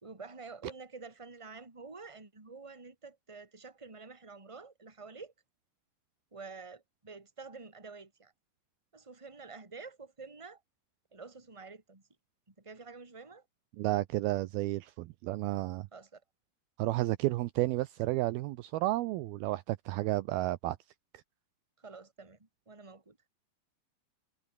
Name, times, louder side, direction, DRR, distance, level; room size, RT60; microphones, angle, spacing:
voice 1, 0.0-5.3 6.3-8.3 8.9-10.6 11.1-12.0 12.5-13.4 15.9-16.2 21.8-23.2, right 4 dB, 10° right, 2.5 m, -48 dB
voice 2, 13.8-15.9 16.8-20.8, right 17 dB, 80° right, 2.3 m, -32 dB
omnidirectional pair, 4.9 m